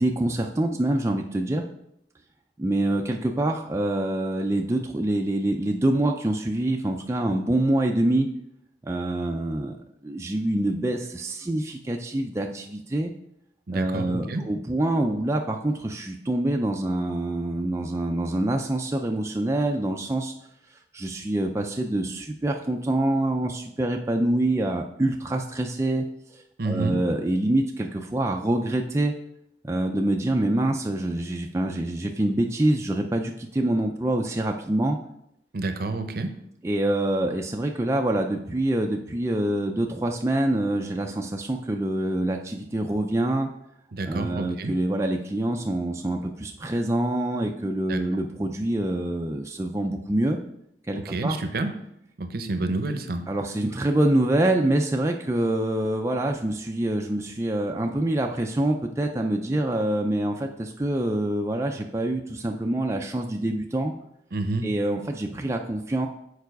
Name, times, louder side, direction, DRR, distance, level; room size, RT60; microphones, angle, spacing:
voice 1, 0.0-1.6 2.6-8.3 8.8-9.8 10.0-13.1 13.7-20.3 20.7-26.1 26.3-29.1 29.6-35.0 36.6-43.5 44.1-50.4 50.9-51.4 53.3-63.9 64.6-66.1, right 1 dB, 15° right, 2 dB, 0.4 m, -25 dB
voice 2, 13.7-14.4 26.6-27.0 35.5-36.4 43.9-44.7 47.9-48.0 50.9-51.7 52.2-53.2 64.3-64.7, right 2 dB, 55° right, 8 dB, 0.7 m, -29 dB
6.8 x 4.7 x 4.7 m, 0.77 s
head